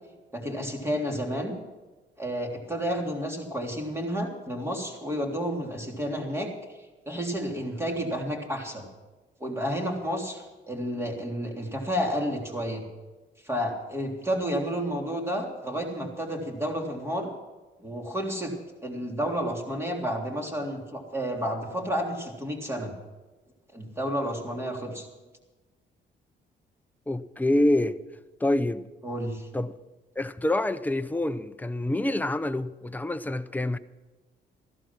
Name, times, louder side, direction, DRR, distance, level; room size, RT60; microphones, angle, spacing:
voice 1, 0.3-1.5 2.2-6.5 7.0-8.8 9.4-12.9 13.4-17.3 17.8-18.5 18.8-22.9 23.7-25.1 29.0-29.5, equal, 15° right, 3.3 m, -31 dB
voice 2, 27.1-28.0 28.4-28.8 29.5-29.7 30.2-33.8, left 1 dB, 10° left, 0.7 m, -26 dB
14.5 x 12.5 x 6.0 m
cardioid pair, 90°, 20 cm